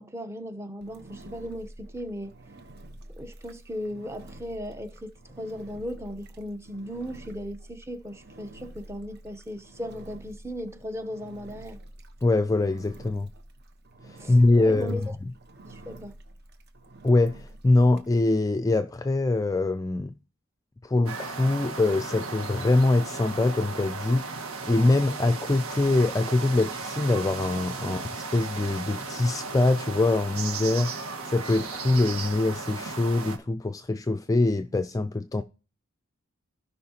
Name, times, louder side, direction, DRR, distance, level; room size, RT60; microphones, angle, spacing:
voice 1, 0.0-2.4 3.2-11.8 14.2-15.0 15.6-16.1, equal, 10° right, 0.8 m, -37 dB
Engine, 0.8-18.1, right 1 dB, 50° right, 1.0 m, -48 dB
voice 2, 12.2-13.3 14.0-15.0 17.0-20.1 20.8-24.4 24.6-30.9 31.3-35.4, left 2 dB, 15° left, 0.4 m, -24 dB
sound 1, 21.1-33.4, right 4 dB, 85° right, 1.6 m, -36 dB
16.0 x 5.5 x 2.9 m
head